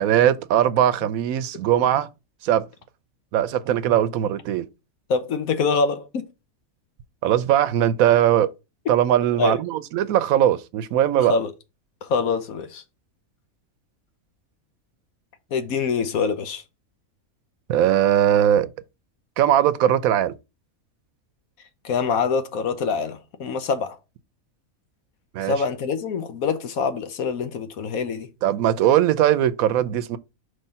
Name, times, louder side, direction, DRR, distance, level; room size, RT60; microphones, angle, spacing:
voice 1, 0.0-2.1 2.4-2.7 3.3-4.7 7.2-8.5 8.9-11.4 17.7-18.7 19.4-20.3 25.3-25.5 28.4-30.2, right 11 dB, 80° right, 1.0 m, -20 dB
voice 2, 5.1-6.2 9.4-9.6 11.2-11.5 12.0-12.8 15.5-16.6 21.8-24.0 25.4-28.3, left 5 dB, 85° left, 1.3 m, -25 dB
5.6 x 3.2 x 5.5 m
omnidirectional pair, 1.5 m